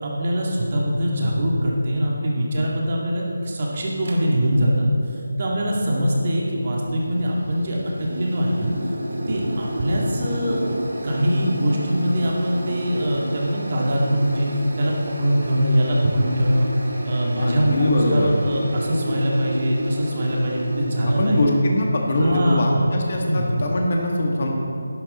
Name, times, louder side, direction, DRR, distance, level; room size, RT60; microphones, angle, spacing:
voice 1, 0.0-8.7 9.3-10.6 11.0-14.5 14.8-16.7 17.0-21.5 22.1-22.9 23.2-23.7, equal, 35° right, -2 dB, 2.0 m, -22 dB
sound 1, 4.0-4.3 6.6-21.5, equal, 65° right, 2.5 m, -31 dB
voice 2, 17.4-18.3 21.1-24.5, left 1 dB, 40° left, -1 dB, 1.8 m, -22 dB
11.5 x 11.0 x 4.2 m, 2.6 s
figure-of-eight pair, 170°, 0 cm